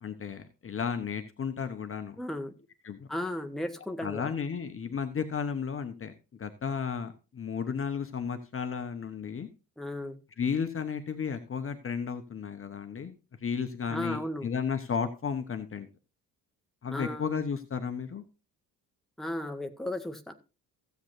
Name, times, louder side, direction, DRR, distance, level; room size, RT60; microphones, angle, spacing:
voice 1, 0.0-2.2 2.8-3.1 4.0-9.5 10.4-15.9 16.8-18.2, left 6 dB, 30° left, 8 dB, 1.1 m, -33 dB
voice 2, 2.2-2.5 3.1-4.3 9.8-10.2 13.9-14.5 16.9-17.2 19.2-20.3, left 1 dB, ahead, 6 dB, 1.4 m, -35 dB
16.0 x 8.1 x 2.7 m, 0.31 s
figure-of-eight pair, 50°, 47 cm